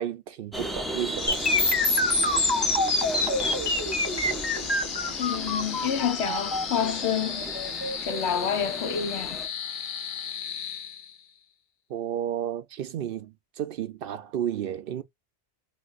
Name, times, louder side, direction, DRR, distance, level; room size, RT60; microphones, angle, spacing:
voice 1, 0.0-1.5 11.9-15.0, right 10 dB, 65° right, 0.7 m, -32 dB
sound 1, 0.5-9.5, right 1 dB, ahead, 0.4 m, -36 dB
sound 2, 1.1-11.4, left 7 dB, 55° left, 0.7 m, -36 dB
sound 3, 1.3-9.2, left 2 dB, 25° left, 0.8 m, -26 dB
voice 2, 5.2-7.4 8.0-9.4, left 8 dB, 85° left, 1.0 m, -28 dB
3.4 x 2.5 x 2.5 m
omnidirectional pair, 1.1 m